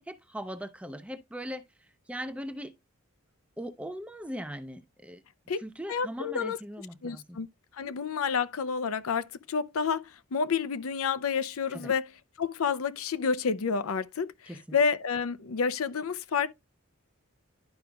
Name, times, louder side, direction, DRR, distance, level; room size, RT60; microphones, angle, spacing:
voice 1, 0.0-2.7 3.6-5.2 5.6-7.4 7.8-7.9 11.7-11.9 14.5-14.8, equal, 5° right, 0.5 m, -40 dB
voice 2, 5.9-6.6 7.0-7.5 7.8-12.0 12.4-14.3 14.7-16.5, left 6 dB, 75° left, 0.5 m, -29 dB
11.5 x 4.9 x 2.3 m
head